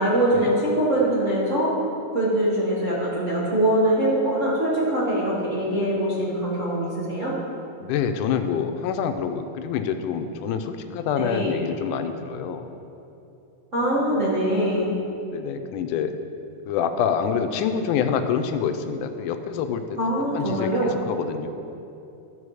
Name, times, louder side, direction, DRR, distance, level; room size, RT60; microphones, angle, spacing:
voice 1, 0.0-1.7 2.1-7.3 11.1-11.5 13.7-14.9 20.0-20.9, right 1 dB, 35° right, -8 dB, 1.3 m, -23 dB
voice 2, 7.8-12.7 15.3-16.1 16.7-19.8 20.3-21.5, left 7 dB, 90° left, 7 dB, 2.2 m, -26 dB
14.0 x 5.3 x 4.8 m, 2.8 s
omnidirectional pair, 3.5 m